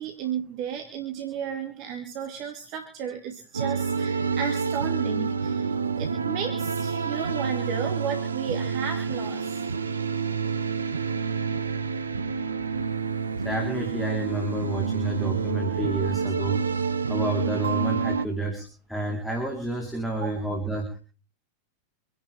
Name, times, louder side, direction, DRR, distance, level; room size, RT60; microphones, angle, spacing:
voice 1, 0.0-5.7 6.0-9.6 20.2-20.3, right 8 dB, 40° right, 4 dB, 2.4 m, -33 dB
sound 1, 3.5-18.3, right 5 dB, 75° right, 0.9 m, -28 dB
voice 2, 13.4-16.6 17.1-20.9, right 2 dB, ahead, -1 dB, 4.1 m, -29 dB
27.0 x 11.0 x 3.6 m, 0.38 s
figure-of-eight pair, 90°, 0 cm